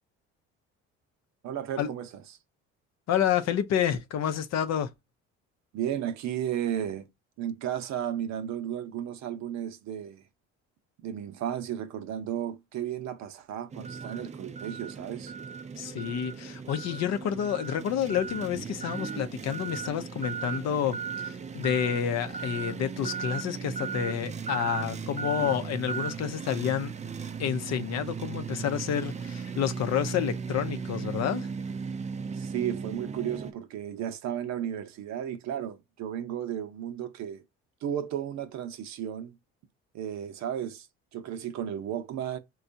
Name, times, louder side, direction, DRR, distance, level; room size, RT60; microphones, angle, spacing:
voice 1, 1.4-2.1 5.7-7.1 7.4-10.2 11.0-15.3 32.3-37.4 37.8-39.4 39.9-40.9 41.1-42.4, right 10 dB, 60° right, 0.7 m, -34 dB
voice 2, 3.1-4.9 15.8-26.9 27.4-31.5, left 9 dB, 60° left, 0.6 m, -29 dB
sound 1, 13.7-33.5, right 6 dB, 25° right, 0.5 m, -36 dB
4.3 x 2.3 x 2.6 m
supercardioid pair, 75°, 30 cm